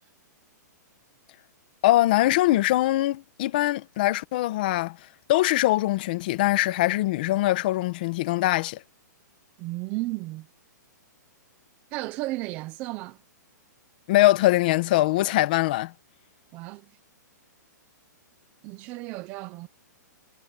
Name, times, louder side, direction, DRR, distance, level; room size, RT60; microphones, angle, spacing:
voice 1, 1.8-5.0 5.3-8.8 14.1-15.9, left 16 dB, 30° left, 1.1 m, -22 dB
voice 2, 9.6-10.5 11.9-13.2 16.5-16.9 18.6-19.7, right 20 dB, 15° right, 0.5 m, -33 dB
hypercardioid pair, 175°, 10 cm